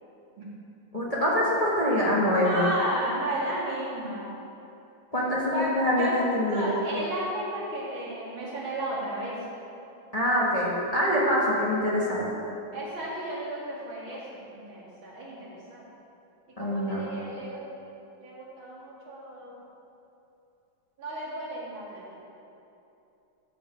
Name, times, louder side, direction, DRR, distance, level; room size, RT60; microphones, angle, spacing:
voice 1, 0.9-2.6 5.1-6.8 10.1-12.3 16.6-17.1, equal, 20° left, -6 dB, 1.5 m, -25 dB
voice 2, 2.4-4.3 5.5-6.2 6.5-9.4 12.7-15.8 16.6-17.7 18.2-19.6 21.0-22.0, right 1 dB, 80° right, -6 dB, 3.0 m, -34 dB
13.0 x 5.3 x 6.2 m, 2.8 s
omnidirectional pair, 2.2 m